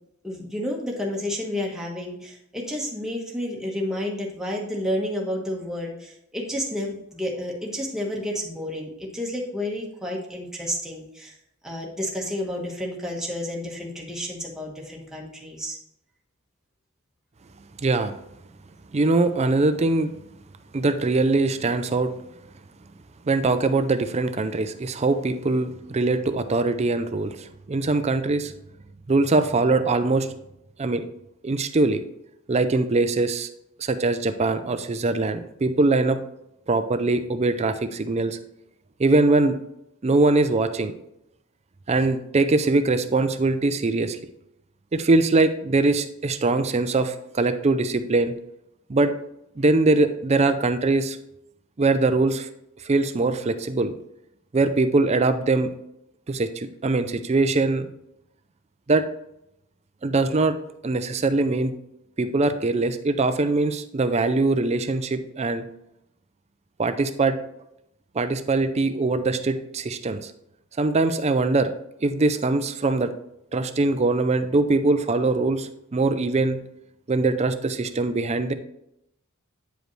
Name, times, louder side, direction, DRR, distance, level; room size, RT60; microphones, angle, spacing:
voice 1, 0.2-11.3 11.6-15.8, left 1 dB, 5° right, -2 dB, 1.3 m, -30 dB
voice 2, 17.8-18.1 18.9-20.1 20.7-22.1 23.2-28.5 29.1-30.3 30.8-31.0 31.4-32.0 32.5-33.5 33.8-36.2 36.7-38.4 39.0-39.6 40.0-40.9 41.9-44.2 44.9-48.3 48.9-49.1 49.6-51.2 51.8-52.5 52.8-53.9 54.5-55.7 56.3-57.9 58.9-59.0 60.0-60.6 60.8-61.7 62.2-65.7 66.8-67.4 68.1-70.3 70.8-71.7 72.0-73.1 73.5-76.6 77.1-78.5, right 3 dB, 30° right, 10 dB, 0.5 m, -22 dB
9.0 x 5.1 x 3.2 m, 0.80 s
head